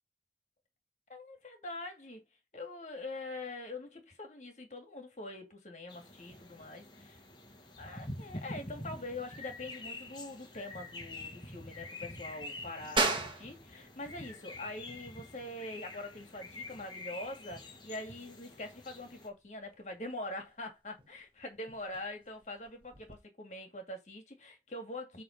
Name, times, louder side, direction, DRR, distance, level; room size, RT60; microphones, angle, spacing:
voice 1, 1.1-2.2 2.5-7.2 7.8-25.2, left 2 dB, 40° left, 2.3 m, -44 dB
sound 1, 5.9-19.3, left 2 dB, 25° left, 1.4 m, -47 dB
sound 2, 13.0-23.2, right 3 dB, 30° right, 1.5 m, -40 dB
7.7 x 3.5 x 5.3 m
head